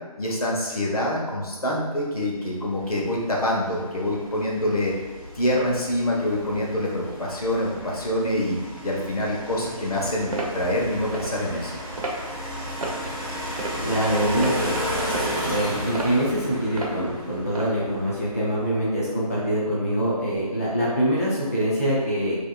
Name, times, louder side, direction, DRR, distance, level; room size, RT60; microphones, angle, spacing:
voice 1, 0.2-4.9 5.3-8.6 8.8-11.7, left 1 dB, 70° left, -3 dB, 1.2 m, -26 dB
sound 1, 2.6-18.8, equal, 35° right, 0.8 m, -34 dB
sound 2, 10.3-10.5 11.1-11.3 12.0-12.2 12.8-13.0 13.6-13.9 14.4-14.6 15.1-15.4 15.9-16.1 16.8-17.0 17.5-17.7, right 2 dB, 65° right, 0.9 m, -30 dB
voice 2, 13.8-14.7 15.4-22.4, equal, 25° left, -8 dB, 0.5 m, -24 dB
4.8 x 2.9 x 2.4 m, 1.3 s
figure-of-eight pair, 175°, 20 cm